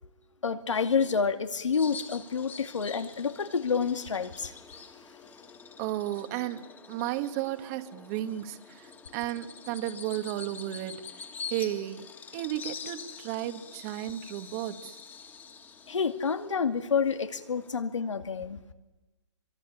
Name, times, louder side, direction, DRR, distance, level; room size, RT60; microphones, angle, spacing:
voice 1, 0.4-4.5 15.9-18.6, left 5 dB, 85° left, 8 dB, 2.4 m, -28 dB
Bird vocalization bird call bird song, 1.7-17.8, left 6 dB, 10° left, 2.1 m, -46 dB
voice 2, 5.8-11.1 11.5-12.1 12.3-15.0, right 13 dB, 30° right, 10 dB, 1.8 m, -34 dB
24.5 x 24.0 x 9.9 m, 1.1 s
hypercardioid pair, 145°, 15 cm